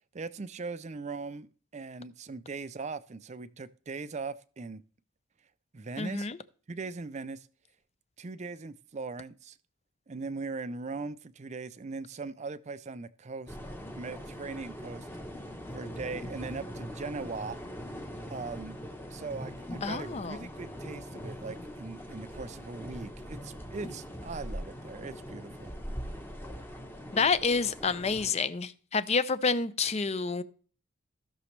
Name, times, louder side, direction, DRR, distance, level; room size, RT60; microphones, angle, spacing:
voice 1, 0.1-4.8 5.7-6.3 6.7-7.5 8.2-9.6 10.1-13.6 13.9-15.1 15.7-17.6 18.3-18.8 19.1-25.7, right 4 dB, 35° right, 0.4 m, -40 dB
voice 2, 6.0-6.4 19.8-20.4 27.1-30.4, left 4 dB, 30° left, 0.5 m, -28 dB
sound 1, 13.5-28.3, equal, 10° left, 0.9 m, -42 dB
16.5 x 6.1 x 3.2 m
head